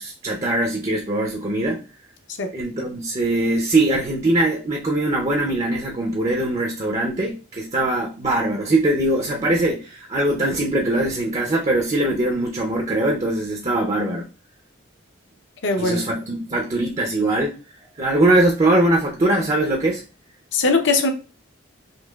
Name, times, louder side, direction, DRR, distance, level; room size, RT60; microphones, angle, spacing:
voice 1, 0.0-1.8 2.5-14.2 15.8-17.5 18.0-20.0, right 1 dB, 30° right, 0 dB, 0.5 m, -21 dB
voice 2, 15.6-16.0 20.5-21.1, left 3 dB, 60° left, 5 dB, 0.7 m, -20 dB
5.5 x 2.8 x 2.3 m, 0.34 s
head